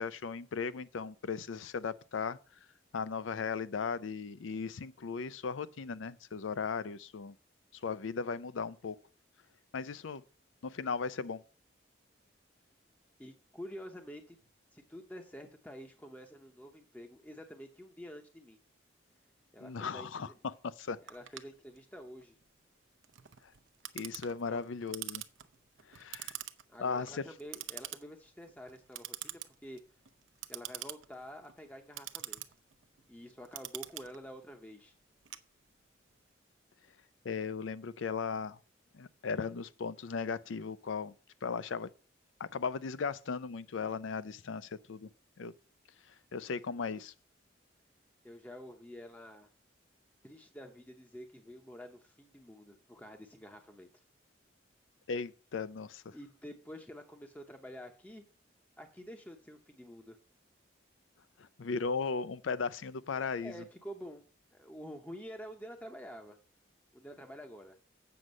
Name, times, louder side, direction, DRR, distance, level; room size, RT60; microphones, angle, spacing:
voice 1, 0.0-2.4 2.9-7.3 7.8-9.0 9.7-10.2 10.6-11.4 19.6-21.0 23.9-25.2 25.9-26.3 26.8-27.2 37.2-38.6 38.9-41.1 41.4-41.9 42.4-45.1 45.4-45.5 46.3-47.1 55.1-56.2 61.4-63.5, left 5 dB, 90° left, 0.5 m, -37 dB
voice 2, 13.2-14.4 14.7-18.6 19.5-20.3 21.0-22.4 24.5-24.6 26.7-29.8 30.5-32.4 33.1-34.9 48.2-49.5 50.2-54.0 56.1-58.2 58.8-60.2 63.1-64.2 64.5-66.4 66.9-67.8, equal, 10° left, 0.7 m, -48 dB
Clock, 21.1-36.0, right 13 dB, 85° right, 0.7 m, -46 dB
7.9 x 6.3 x 5.3 m
head